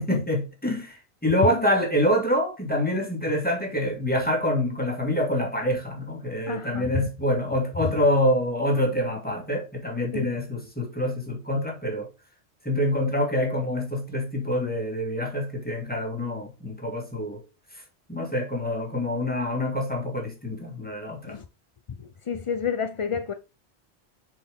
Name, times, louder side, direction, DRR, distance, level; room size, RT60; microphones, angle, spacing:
voice 1, 0.0-12.1 12.6-17.4 18.1-21.4, left 1 dB, 10° left, 2.2 m, -26 dB
voice 2, 6.5-6.9 10.1-10.3 21.3-21.4 22.0-23.3, left 6 dB, 50° left, 0.4 m, -29 dB
7.2 x 4.6 x 3.6 m
omnidirectional pair, 1.1 m